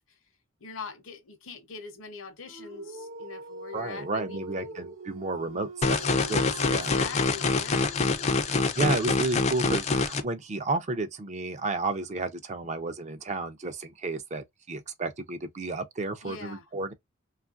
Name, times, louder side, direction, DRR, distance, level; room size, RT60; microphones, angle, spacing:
voice 1, 0.6-4.7 6.7-8.6 16.2-16.6, left 5 dB, 70° left, 0.8 m, -42 dB
Dog, 2.4-8.8, right 1 dB, 70° right, 0.8 m, -43 dB
voice 2, 3.7-7.0 8.5-16.9, right 3 dB, 35° right, 0.5 m, -32 dB
sound 1, 5.8-10.2, left 4 dB, 35° left, 0.4 m, -25 dB
3.1 x 2.4 x 2.3 m
head